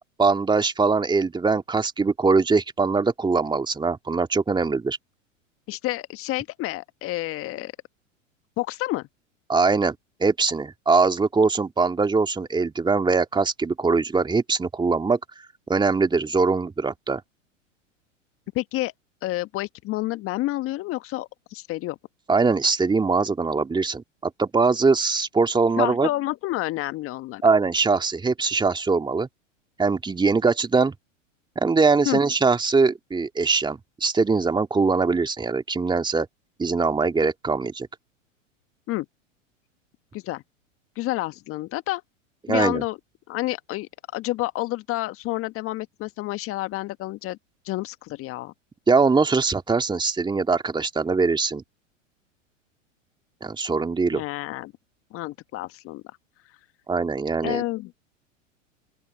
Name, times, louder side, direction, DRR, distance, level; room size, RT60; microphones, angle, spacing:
voice 1, 0.2-5.0 9.5-10.0 10.2-15.2 15.7-17.2 22.3-26.1 27.4-29.3 29.8-30.9 31.6-36.3 36.6-37.9 42.5-42.8 48.9-51.6 53.4-54.2 56.9-57.6, right 4 dB, 10° right, 2.3 m, -22 dB
voice 2, 5.7-7.7 8.6-9.0 18.5-18.9 19.2-22.0 25.8-27.4 32.0-32.2 38.9-39.0 40.1-40.4 40.9-42.0 42.5-43.0 43.3-47.4 47.6-48.5 54.1-54.7 55.1-56.0 57.4-57.9, left 17 dB, 35° left, 1.5 m, -29 dB
open air
hypercardioid pair, 100°, 39 cm